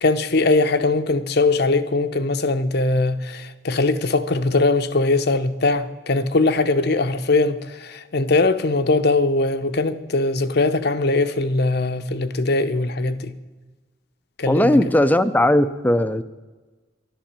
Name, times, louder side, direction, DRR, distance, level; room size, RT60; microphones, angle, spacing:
voice 1, 0.0-7.6 8.1-13.3 14.4-14.8, left 3 dB, 60° left, 0.8 m, -20 dB
voice 2, 14.5-16.2, left 1 dB, 10° left, 0.5 m, -18 dB
11.5 x 11.5 x 7.4 m
head